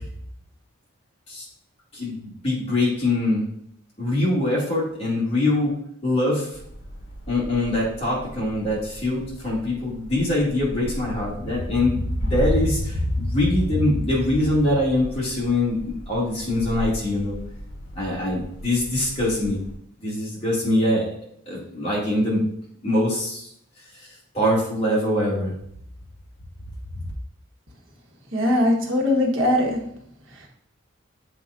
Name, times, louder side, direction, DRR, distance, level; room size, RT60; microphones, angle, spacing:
voice 1, 1.9-3.5 4.0-5.8 6.0-6.5 7.3-17.4 18.0-19.6 20.0-21.0 21.5-22.4 22.8-23.5 24.3-25.5, left 1 dB, 30° left, -6 dB, 2.2 m, -23 dB
sound 1, 6.5-19.8, equal, 65° left, 1.3 m, -37 dB
voice 2, 28.3-29.8, left 1 dB, 80° right, 0 dB, 1.2 m, -20 dB
7.6 x 4.9 x 2.5 m, 0.68 s
head